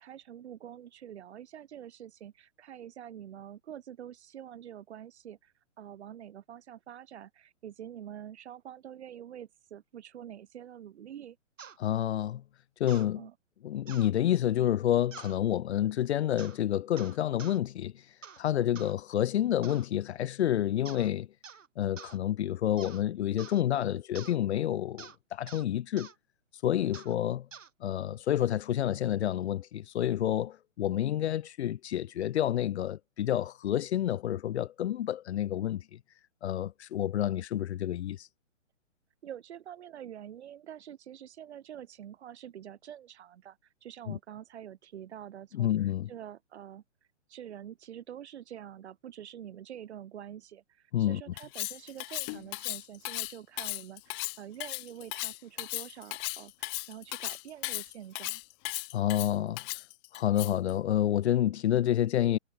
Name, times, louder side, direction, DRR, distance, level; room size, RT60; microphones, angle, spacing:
voice 1, 0.0-11.4 13.1-13.3 23.7-24.0 39.2-46.8 47.3-58.4, right 10 dB, 60° right, 5.0 m, -46 dB
sound 1, 11.6-11.8 12.9-13.1 13.9-14.1 15.1-15.4 16.4-16.6 17.0-17.6 18.2-18.4 18.8-18.9 19.6-19.9 20.9-21.1 21.4-21.7 22.0-22.2 22.8-23.0 23.4-23.6 24.2-24.4 25.0-25.2 25.5-25.7 26.0-26.2 26.9-27.1 27.5-27.7, right 7 dB, 80° right, 3.3 m, -47 dB
voice 2, 11.8-12.4 12.8-13.2 13.6-17.9 18.4-21.3 21.8-26.1 26.6-27.5 27.8-35.8 36.4-38.3 44.1-44.2 45.5-46.1 50.9-51.2 58.9-59.6 60.1-62.4, left 11 dB, 60° left, 0.6 m, -29 dB
Cutlery silverware, 51.4-60.7, left 39 dB, 25° left, 0.9 m, -36 dB
hypercardioid pair, 140°, 38 cm